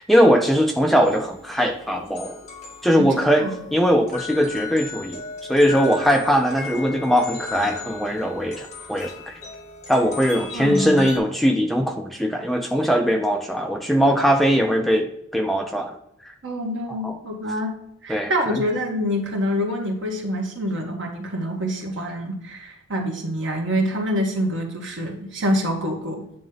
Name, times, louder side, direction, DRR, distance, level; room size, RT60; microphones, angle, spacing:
voice 1, 0.0-2.4 2.8-3.4 3.7-5.2 5.5-9.2 9.9-16.0 16.9-17.2 18.1-18.6, equal, ahead, 4 dB, 0.5 m, -20 dB
sound 1, 1.0-11.2, left 4 dB, 35° left, 1.8 m, -37 dB
voice 2, 3.0-3.6 10.5-11.1 16.4-26.2, equal, 70° right, 1 dB, 1.7 m, -26 dB
9.3 x 3.3 x 5.6 m, 0.74 s
head